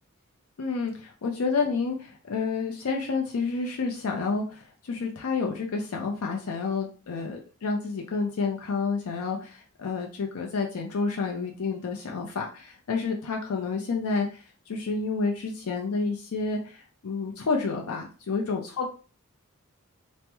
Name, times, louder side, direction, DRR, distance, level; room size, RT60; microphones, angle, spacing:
voice 1, 0.6-18.9, left 4 dB, 75° left, 1 dB, 0.5 m, -29 dB
2.9 x 2.0 x 3.3 m, 0.37 s
head